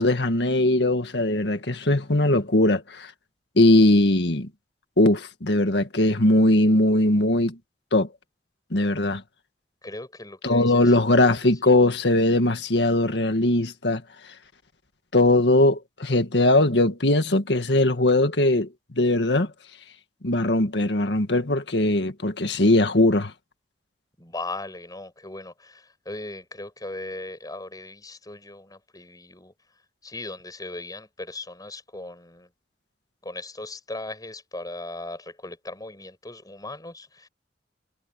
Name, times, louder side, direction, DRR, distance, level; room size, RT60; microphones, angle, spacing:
voice 1, 0.0-3.1 3.6-4.5 5.0-7.6 7.9-8.1 8.7-9.2 10.4-14.0 15.1-19.5 20.2-23.3, left 1 dB, 75° left, 1.9 m, -20 dB
voice 2, 9.8-10.8 24.2-29.5 30.0-32.5 33.2-37.3, left 2 dB, 20° left, 6.7 m, -38 dB
head